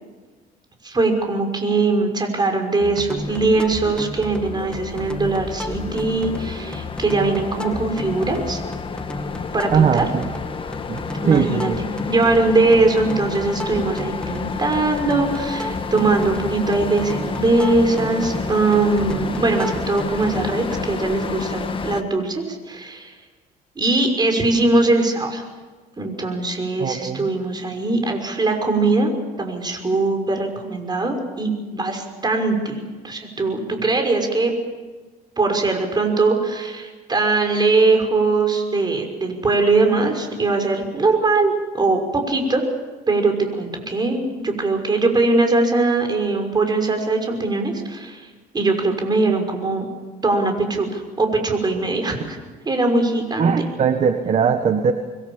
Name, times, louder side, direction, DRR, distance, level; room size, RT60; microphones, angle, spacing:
voice 1, 0.8-8.6 9.5-10.1 11.2-11.7 12.1-23.1 23.8-25.4 26.0-29.1 29.4-32.8 33.0-34.5 35.4-42.6 43.1-48.3 48.5-49.9 50.2-52.4 52.6-53.7, right 3 dB, 25° right, 4 dB, 6.0 m, -21 dB
sound 1, 2.8-20.9, left 1 dB, 5° left, 2.2 m, -34 dB
sound 2, 3.2-22.0, left 5 dB, 30° left, 1.7 m, -30 dB
voice 2, 9.7-10.3 10.9-11.0 11.3-11.8 26.8-27.3 53.4-54.9, right 6 dB, 40° right, 7 dB, 1.6 m, -19 dB
26.5 x 22.0 x 7.4 m, 1.3 s
cardioid pair, 110°, 17 cm